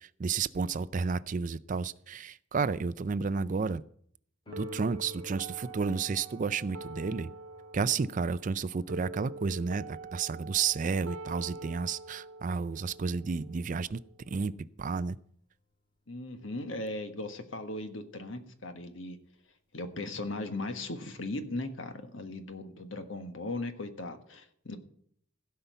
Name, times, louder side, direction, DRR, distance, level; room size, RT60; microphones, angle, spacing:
voice 1, 0.0-3.8 4.6-7.3 7.7-14.0 14.3-14.5 14.8-15.2, right 5 dB, 40° right, 16 dB, 0.4 m, -31 dB
Piano, 4.5-14.9 22.4-22.5, left 3 dB, 25° left, 2.6 m, -56 dB
sound 1, 4.5-14.5, right 3 dB, 80° right, 0.6 m, -46 dB
voice 2, 16.1-19.2 19.7-24.8, left 2 dB, 75° left, 7 dB, 1.4 m, -38 dB
16.5 x 5.6 x 8.1 m, 0.64 s
head